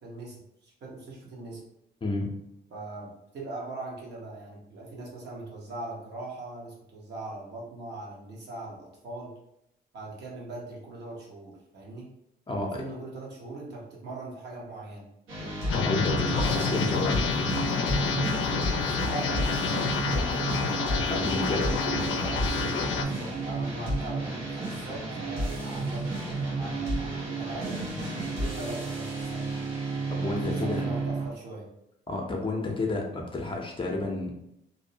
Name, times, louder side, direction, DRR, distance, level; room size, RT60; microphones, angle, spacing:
voice 1, 0.0-1.6 2.7-9.4 9.9-12.1 12.5-15.1 18.8-20.3 21.5-22.5 23.0-27.8 28.4-29.5 30.4-31.7, right 2 dB, 60° right, -3 dB, 1.0 m, -41 dB
voice 2, 2.0-2.3 12.5-12.8 15.7-17.2 21.1-21.8 30.1-30.8 32.1-34.3, left 2 dB, 25° left, 0 dB, 0.6 m, -30 dB
sound 1, 15.3-31.3, right 2 dB, 85° right, 1.1 m, -32 dB
sound 2, 15.7-23.0, left 5 dB, 85° left, 0.4 m, -28 dB
2.6 x 2.0 x 2.7 m, 0.80 s
cardioid pair, 90°, 20 cm